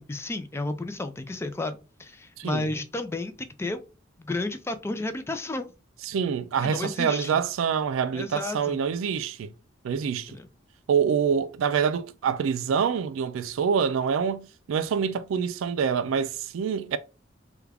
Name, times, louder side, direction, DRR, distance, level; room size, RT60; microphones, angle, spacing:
voice 1, 0.0-3.3 3.6-3.8 4.2-5.7 6.6-7.4 8.1-8.8 10.3-10.4, left 2 dB, 15° left, 0.3 m, -32 dB
voice 2, 2.4-2.7 6.0-9.5 9.8-10.3 10.9-17.0, right 7 dB, 85° right, 0.3 m, -26 dB
3.4 x 2.3 x 3.3 m
head